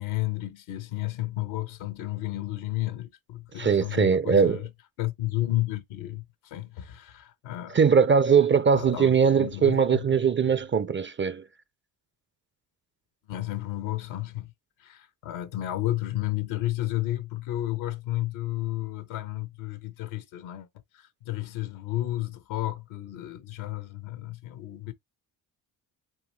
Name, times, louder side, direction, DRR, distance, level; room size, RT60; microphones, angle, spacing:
voice 1, 0.0-4.7 5.0-7.8 8.7-10.0 13.2-14.5 14.8-20.7 20.9-24.9, left 15 dB, 85° left, 1.0 m, -32 dB
voice 2, 3.6-4.6 7.7-11.4, right 6 dB, 25° right, 0.5 m, -21 dB
6.1 x 2.6 x 3.1 m
supercardioid pair, 50°, 46 cm